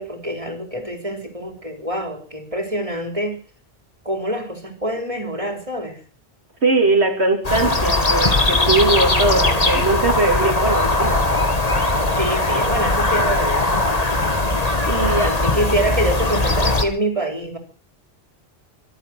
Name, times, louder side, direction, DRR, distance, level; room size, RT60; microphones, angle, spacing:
voice 1, 0.0-3.4 4.0-6.0 12.1-13.8 14.9-17.6, right 1 dB, 30° right, 5 dB, 4.1 m, -25 dB
voice 2, 6.6-11.2 14.9-15.3, right 2 dB, 85° right, 5 dB, 3.3 m, -20 dB
sound 1, 7.4-16.8, left 2 dB, 35° left, 2.1 m, -19 dB
25.0 x 8.7 x 6.2 m, 0.41 s
omnidirectional pair, 1.1 m